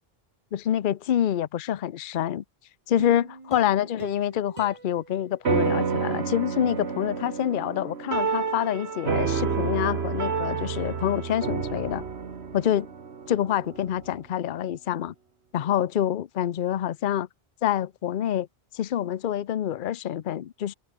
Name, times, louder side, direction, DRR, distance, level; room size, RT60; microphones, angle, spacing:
voice 1, 0.5-2.4 2.9-12.0 12.5-12.9 13.3-15.1 15.5-17.3 17.6-18.5 18.7-20.7, left 10 dB, 60° left, 0.8 m, -26 dB
sound 1, 3.0-6.3 6.7-6.8, right 3 dB, 30° right, 1.5 m, -44 dB
sound 2, 5.4-14.2, right 5 dB, 90° right, 1.8 m, -29 dB
omnidirectional pair, 1.0 m